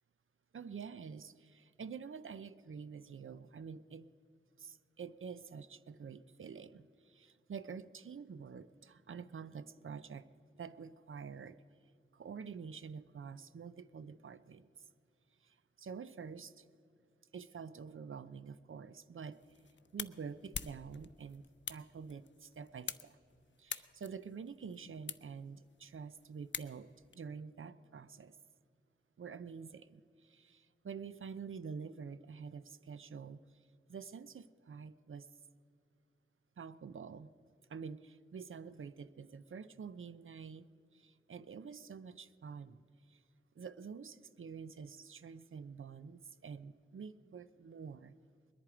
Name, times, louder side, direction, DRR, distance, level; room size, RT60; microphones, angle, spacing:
voice 1, 0.5-4.1 4.6-10.3 10.6-11.6 12.1-14.7 15.4-16.6 17.3-19.4 19.9-21.4 21.7-23.2 23.6-28.4 29.2-33.6 33.9-35.3 36.6-37.3 37.7-42.8 43.1-43.2 43.6-48.1, right 6 dB, 70° right, 0.5 m, -48 dB
sound 1, 19.3-27.1, left 6 dB, 60° left, 0.5 m, -47 dB
21.0 x 10.5 x 4.9 m
wide cardioid pair, 70°, 21 cm